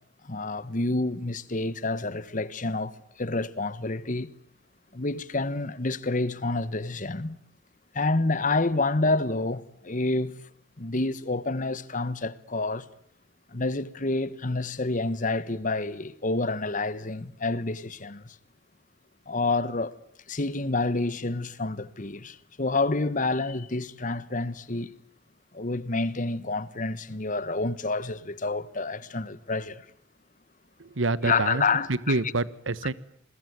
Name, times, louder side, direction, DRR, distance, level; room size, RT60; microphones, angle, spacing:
voice 1, 0.2-4.3 4.9-7.4 7.9-10.4 10.8-12.9 13.5-18.3 19.3-19.9 20.3-24.9 25.5-29.9 31.2-32.2, left 3 dB, 40° left, 1.3 m, -28 dB
voice 2, 30.8-32.9, right 3 dB, 90° right, 1.3 m, -27 dB
28.5 x 22.0 x 9.5 m
head